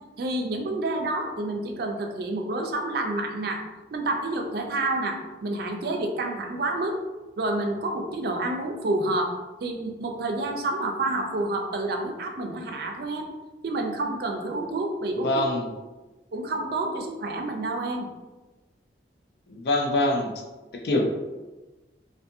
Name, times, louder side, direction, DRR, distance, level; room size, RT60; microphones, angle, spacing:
voice 1, 0.2-3.6 3.9-7.0 7.4-9.3 9.6-13.3 13.6-15.3 16.3-18.1, right 2 dB, 60° right, 3 dB, 0.4 m, -29 dB
voice 2, 15.2-15.7 19.5-20.3 20.7-21.0, left 2 dB, 65° left, 2 dB, 0.4 m, -24 dB
2.5 x 2.5 x 2.6 m, 1.2 s
head